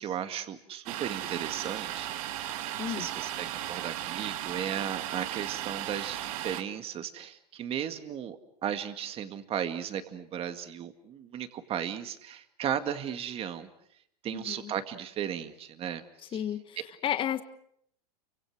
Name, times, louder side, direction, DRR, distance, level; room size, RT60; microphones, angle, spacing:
voice 1, 0.0-2.1 2.6-13.7 14.2-16.0 16.3-16.4, right 9 dB, 30° right, 9 dB, 2.1 m, -35 dB
Domestic sounds home sounds, 0.9-6.6, right 12 dB, 60° right, 1.9 m, -36 dB
voice 2, 14.3-14.7 16.3-17.4, left 10 dB, 25° left, 10 dB, 1.4 m, -32 dB
29.0 x 25.0 x 6.3 m, 0.69 s
hypercardioid pair, 130°, 20 cm